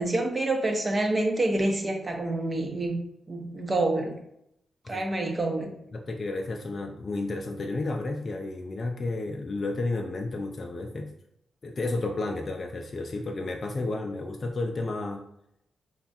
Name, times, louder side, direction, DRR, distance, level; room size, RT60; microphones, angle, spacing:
voice 1, 0.0-3.0 3.3-4.1 4.9-5.7, right 2 dB, 30° right, 3 dB, 0.8 m, -27 dB
voice 2, 5.9-11.1 11.6-15.3, left 2 dB, 45° left, 2 dB, 0.4 m, -32 dB
3.4 x 2.4 x 4.1 m, 0.77 s
cardioid pair, 75°, 0 cm